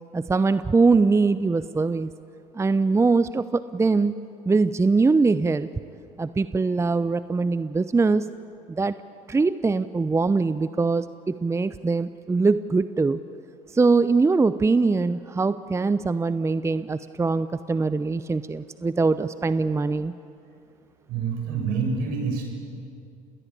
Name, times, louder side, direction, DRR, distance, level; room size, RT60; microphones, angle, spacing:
voice 1, 0.1-2.1 2.5-4.2 4.5-5.7 6.2-8.3 8.8-8.9 9.3-13.2 13.7-20.1, right 4 dB, 15° right, 14 dB, 0.7 m, -22 dB
voice 2, 21.1-22.5, right 5 dB, 65° right, 2 dB, 6.9 m, -27 dB
29.0 x 21.0 x 8.4 m, 2.5 s
hypercardioid pair, 65°, 17 cm